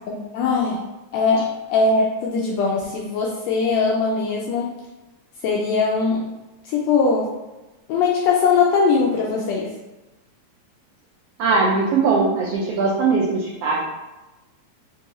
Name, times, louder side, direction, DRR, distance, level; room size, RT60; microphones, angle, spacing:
voice 1, 0.3-0.8 1.1-4.7 5.4-6.3 6.6-7.3 7.9-9.7, left 4 dB, 80° left, -3 dB, 1.5 m, -20 dB
voice 2, 11.4-13.8, right 4 dB, 85° right, -3 dB, 1.4 m, -20 dB
4.5 x 2.7 x 3.0 m, 1.1 s
omnidirectional pair, 3.4 m